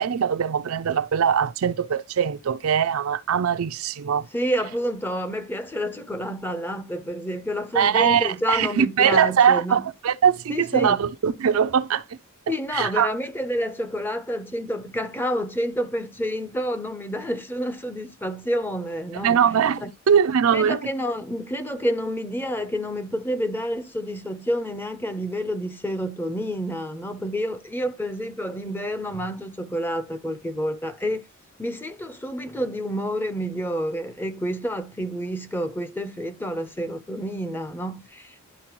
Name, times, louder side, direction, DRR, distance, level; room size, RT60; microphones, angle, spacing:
voice 1, 0.0-4.3 7.7-12.2 12.7-13.1 19.2-20.8, right 7 dB, 70° right, 0.4 m, -21 dB
voice 2, 4.3-9.8 10.5-11.1 12.5-19.3 19.8-19.9 20.5-31.2 31.6-38.4, equal, 10° left, 0.6 m, -29 dB
11.0 x 4.2 x 3.0 m
head